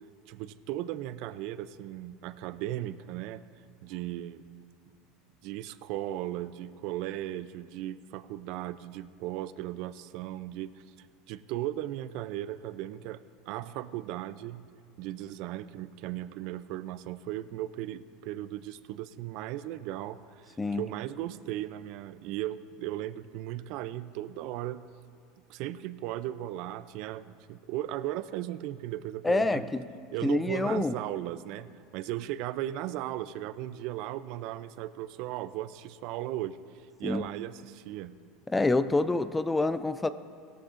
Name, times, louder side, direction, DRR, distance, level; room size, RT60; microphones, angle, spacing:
voice 1, 0.3-3.4 3.8-4.5 5.4-10.7 11.0-13.2 13.5-14.7 15.0-24.9 25.5-29.7 30.1-36.6 37.0-38.2, right 13 dB, 60° right, 15 dB, 0.4 m, -37 dB
voice 2, 29.2-29.9 30.2-30.9 37.0-37.3 38.5-40.1, left 2 dB, 10° left, 13 dB, 0.3 m, -27 dB
17.0 x 13.0 x 2.5 m, 2.3 s
supercardioid pair, 145°, 0 cm